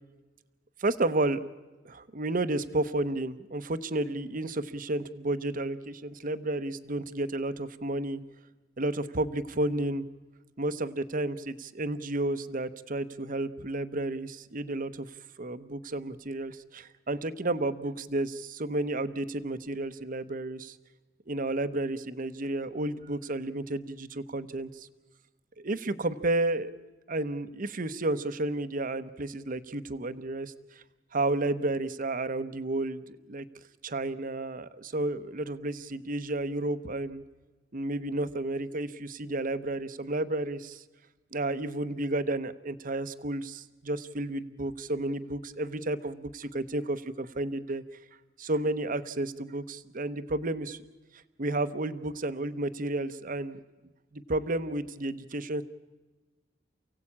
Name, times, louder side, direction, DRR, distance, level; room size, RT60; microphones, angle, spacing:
voice 1, 0.8-1.4 1.8-8.2 8.8-10.0 10.6-15.1 15.4-20.8 21.3-24.9 25.6-26.7 27.1-30.5 31.1-33.4 33.8-37.2 37.7-40.8 41.3-47.8 48.4-50.8 51.4-53.6 54.1-55.6, right 2 dB, 50° right, 12 dB, 1.0 m, -32 dB
29.0 x 16.5 x 8.6 m, 1.2 s
head